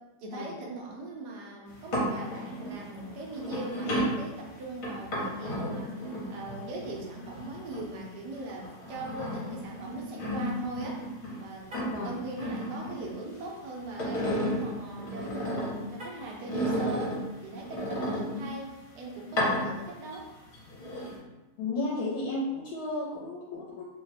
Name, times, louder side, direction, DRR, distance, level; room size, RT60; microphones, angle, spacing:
voice 1, 0.0-20.3, right 2 dB, 80° right, -1 dB, 1.3 m, -40 dB
sound 1, 1.7-8.1 8.5-11.4 11.7-13.5 13.8-15.9 16.5-18.7 19.2-20.2 20.5-21.2, equal, 60° left, 1.3 m, -33 dB
Car, 11.6-12.1 15.9-16.4, left 1 dB, 60° right, 0.5 m, -45 dB
voice 2, 11.8-12.1 18.4-18.5 21.6-23.8, left 2 dB, 80° left, -4 dB, 1.1 m, -33 dB
3.2 x 2.1 x 4.0 m, 1.1 s
omnidirectional pair, 1.8 m